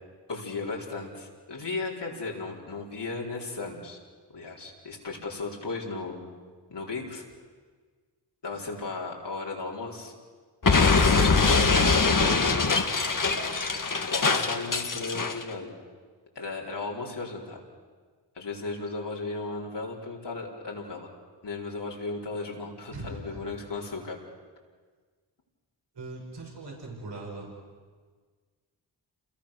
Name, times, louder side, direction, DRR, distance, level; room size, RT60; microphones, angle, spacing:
voice 1, 0.3-4.0 4.3-6.4 6.7-7.2 8.4-10.1 10.8-11.9 12.1-13.0 14.1-15.7 16.3-17.6 18.3-21.1 21.4-24.2, left 3 dB, 75° left, -2 dB, 4.5 m, -35 dB
Explosion, 10.6-15.4, left 4 dB, 50° left, 1.9 m, -23 dB
voice 2, 22.9-23.4 25.9-27.5, right 2 dB, 70° right, -1 dB, 6.2 m, -40 dB
28.0 x 22.0 x 6.7 m, 1.5 s
cardioid pair, 45°, 42 cm